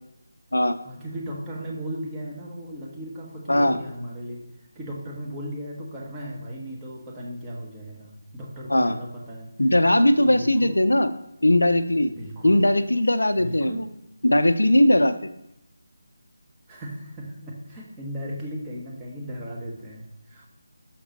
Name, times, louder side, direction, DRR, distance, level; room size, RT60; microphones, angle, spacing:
voice 1, 0.8-4.4 4.7-9.5 10.2-10.7 12.1-12.6 13.4-13.8 16.7-20.5, equal, 15° right, -3 dB, 1.3 m, -36 dB
voice 2, 9.6-11.1 11.4-12.1 12.4-13.9 14.2-15.1, left 1 dB, 90° left, 10 dB, 0.5 m, -19 dB
6.0 x 5.9 x 4.0 m, 0.83 s
figure-of-eight pair, 160°, 0 cm